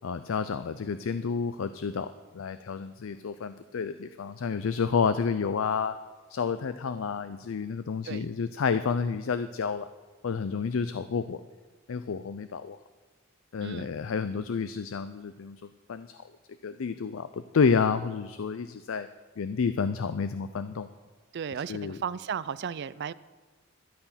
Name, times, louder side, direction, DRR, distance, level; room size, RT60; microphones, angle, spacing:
voice 1, 0.0-6.0 6.3-9.9 10.2-11.4 11.9-12.8 13.5-16.1 16.6-19.1 19.4-20.9 21.7-22.0, left 5 dB, 70° left, 12 dB, 0.4 m, -30 dB
voice 2, 13.6-13.9 21.3-23.1, right 7 dB, 55° right, 18 dB, 0.4 m, -35 dB
13.0 x 10.5 x 5.7 m, 1.3 s
head